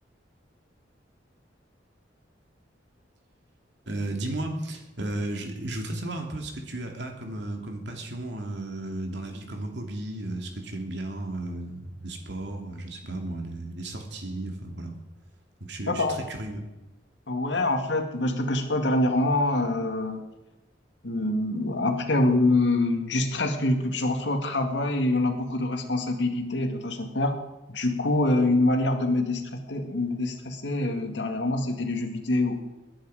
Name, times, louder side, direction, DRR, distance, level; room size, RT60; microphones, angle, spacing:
voice 1, 3.9-15.0 15.7-16.6, right 1 dB, 70° right, 3 dB, 2.8 m, -34 dB
voice 2, 15.9-16.2 17.3-20.2 21.0-27.4 27.7-32.6, left 2 dB, 75° left, 5 dB, 2.1 m, -25 dB
20.5 x 10.5 x 5.0 m, 1.0 s
head